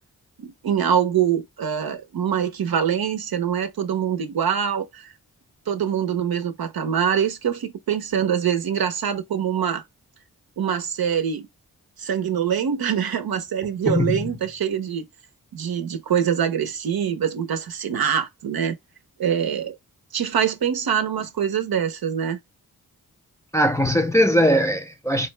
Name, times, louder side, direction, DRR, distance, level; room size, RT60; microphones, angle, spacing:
voice 1, 0.4-5.1 5.7-9.8 10.6-11.5 12.0-15.1 15.5-18.8 19.2-19.8 20.1-22.4, right 8 dB, 70° right, 0.7 m, -24 dB
voice 2, 13.9-14.2 23.5-25.3, equal, 10° left, 0.5 m, -20 dB
3.8 x 2.1 x 3.2 m
cardioid pair, 40°, 38 cm